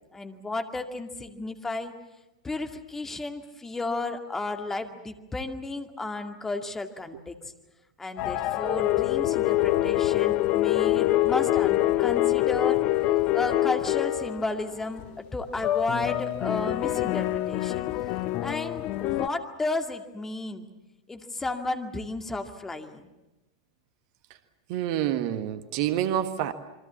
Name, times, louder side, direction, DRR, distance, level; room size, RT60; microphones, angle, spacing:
voice 1, 0.1-2.0 2.4-7.4 8.0-12.8 13.3-17.8 18.4-20.7 21.1-23.1, left 2 dB, 10° left, 5 dB, 2.2 m, -33 dB
sound 1, 8.2-14.5 14.8-15.1 15.6-19.3, left 15 dB, 40° left, 0.9 m, -25 dB
voice 2, 24.7-26.5, right 11 dB, 50° right, 10 dB, 1.5 m, -27 dB
27.5 x 24.0 x 7.2 m, 1.0 s
figure-of-eight pair, 90°, 3 cm